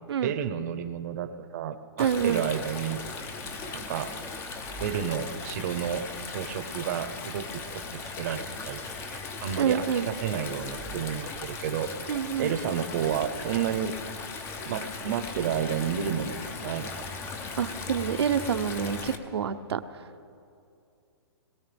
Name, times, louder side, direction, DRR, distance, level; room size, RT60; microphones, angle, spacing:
voice 1, 0.2-3.0 3.7-4.1 4.8-12.1 12.4-14.0 14.7-17.0, right 9 dB, 40° right, 10 dB, 0.9 m, -31 dB
Stream, 2.0-19.2, left 4 dB, 15° left, 0.7 m, -38 dB
voice 2, 2.0-2.5 9.6-10.1 12.1-12.5 17.6-19.8, right 7 dB, 75° right, 9 dB, 0.8 m, -27 dB
22.0 x 17.5 x 3.5 m, 2.5 s
hypercardioid pair, 155°, 14 cm